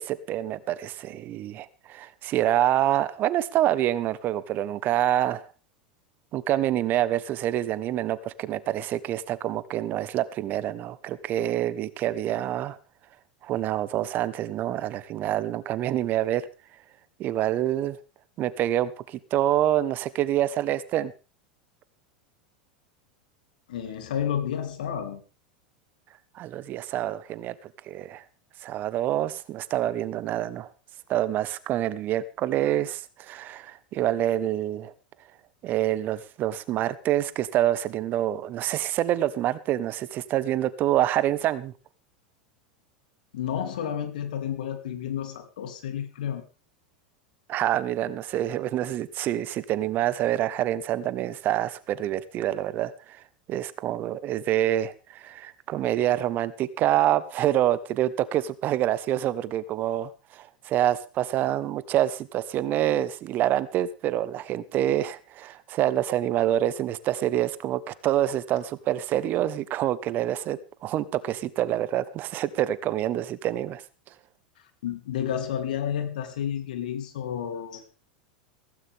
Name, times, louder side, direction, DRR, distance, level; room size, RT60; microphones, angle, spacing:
voice 1, 0.0-5.5 6.3-12.8 13.4-16.4 17.2-18.0 18.4-21.1 26.3-28.2 28.6-30.7 31.1-34.9 35.6-41.7 47.5-53.2 53.5-73.8, right 12 dB, 45° right, 1.3 m, -26 dB
voice 2, 23.7-25.2 43.3-46.4 74.8-77.9, left 9 dB, 75° left, 3.2 m, -31 dB
17.0 x 15.5 x 3.7 m
hypercardioid pair, 95°, 5 cm